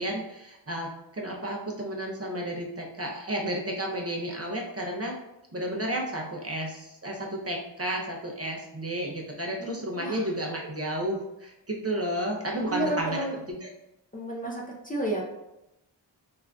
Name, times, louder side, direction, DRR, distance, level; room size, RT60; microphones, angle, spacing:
voice 1, 0.0-5.2 5.5-13.2 13.5-13.7, right 1 dB, 35° right, -1 dB, 0.6 m, -32 dB
voice 2, 9.6-10.3 12.6-13.4 14.1-15.3, right 1 dB, 20° left, -2 dB, 0.5 m, -32 dB
3.6 x 2.5 x 2.2 m, 0.91 s
wide cardioid pair, 45°, 45 cm